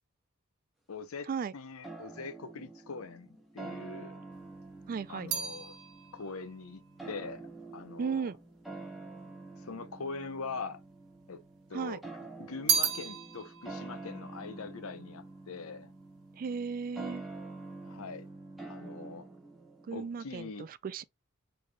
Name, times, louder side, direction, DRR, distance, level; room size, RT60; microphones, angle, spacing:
voice 1, 0.9-4.2 5.1-5.8 6.1-6.8 7.1-7.4 7.7-8.3 9.6-10.8 11.3-11.4 11.7-12.0 12.4-15.9 17.8-18.2 18.7-19.3 19.9-20.7, left 4 dB, 75° left, 0.7 m, -42 dB
sound 1, 1.8-20.3, right 3 dB, ahead, 1.1 m, -47 dB
sound 2, 4.3-8.8 9.5-10.3 10.6-11.8 12.1-15.6 15.9-16.4, right 7 dB, 90° right, 1.0 m, -36 dB
voice 2, 4.9-5.3 8.0-8.4 11.7-12.0 16.4-17.2 19.9-21.0, right 6 dB, 40° right, 0.3 m, -35 dB
4.0 x 3.3 x 2.2 m
head